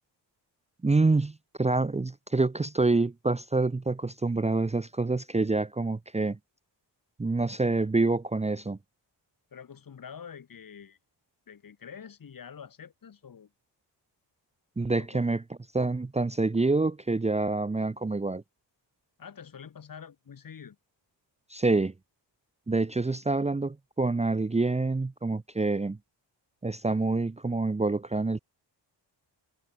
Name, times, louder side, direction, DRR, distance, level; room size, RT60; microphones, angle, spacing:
voice 1, 0.8-6.4 7.2-8.8 14.8-15.4 15.7-18.4 21.5-21.9 22.7-26.0 26.6-28.4, right 3 dB, 15° right, 0.9 m, -27 dB
voice 2, 9.5-11.0 11.5-13.5 15.0-15.2 19.2-20.8 23.0-23.2, left 7 dB, 50° left, 2.8 m, -46 dB
cardioid pair, 115°, 43 cm